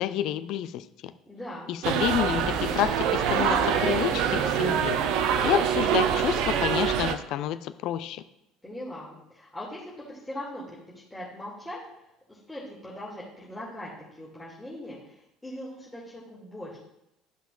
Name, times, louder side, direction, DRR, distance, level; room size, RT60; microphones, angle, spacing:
voice 1, 0.0-1.1 1.7-5.0 5.4-8.2, left 11 dB, 55° left, 12 dB, 0.4 m, -29 dB
voice 2, 1.2-1.7 8.6-11.8 12.3-16.8, left 1 dB, 10° left, -8 dB, 2.2 m, -40 dB
sound 1, 1.8-7.1, right 8 dB, 55° right, 0.6 m, -25 dB
12.5 x 5.6 x 2.4 m, 0.86 s
figure-of-eight pair, 60°, 0 cm